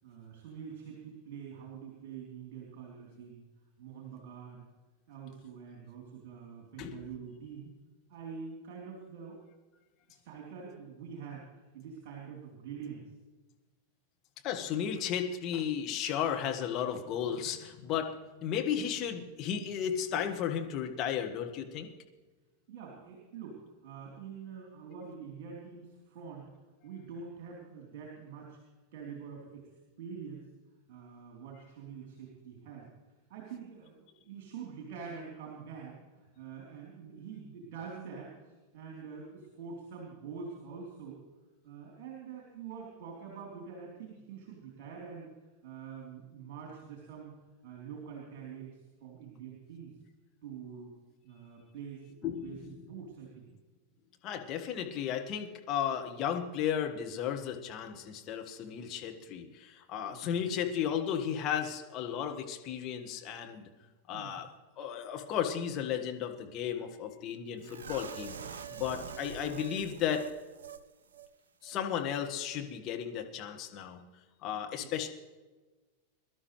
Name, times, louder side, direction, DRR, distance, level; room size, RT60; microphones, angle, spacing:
voice 1, 0.0-3.4 3.8-4.7 5.1-7.7 8.1-9.4 10.1-11.4 11.7-13.0 22.7-23.6 23.8-26.5 26.8-28.6 28.9-29.7 30.0-30.4 30.9-32.9 33.3-41.2 41.6-45.3 45.6-47.3 47.6-49.9 50.4-50.9 51.2-52.2 52.4-53.5 60.1-60.5 64.1-64.4 67.0-67.1 68.7-68.9 74.7-75.1, right 6 dB, 45° right, -2 dB, 3.6 m, -45 dB
voice 2, 14.4-18.1 18.4-21.9 52.2-52.7 54.2-63.7 64.1-64.5 64.8-68.3 68.7-70.2 71.6-74.0 74.4-75.1, left 9 dB, 35° left, 3 dB, 1.7 m, -34 dB
sound 1, 67.6-70.8 71.1-71.3 71.6-71.8, right 6 dB, 65° right, 0.6 m, -45 dB
22.5 x 12.0 x 3.3 m, 1.3 s
figure-of-eight pair, 90°, 0 cm